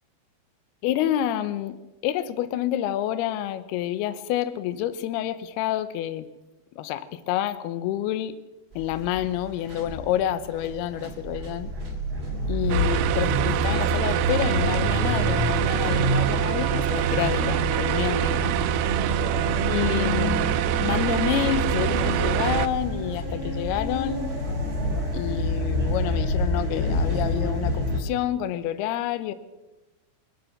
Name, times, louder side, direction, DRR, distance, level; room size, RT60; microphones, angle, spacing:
voice 1, 0.8-6.3 6.7-8.4 8.8-11.7 12.5-18.6 19.7-24.3 25.1-29.3, left 12 dB, 80° left, 13 dB, 2.3 m, -28 dB
sound 1, 8.7-28.0, left 1 dB, 15° right, 2.4 m, -29 dB
sound 2, 12.7-22.7, right 11 dB, 80° right, 3.0 m, -25 dB
24.0 x 9.2 x 6.5 m, 1.1 s
omnidirectional pair, 5.6 m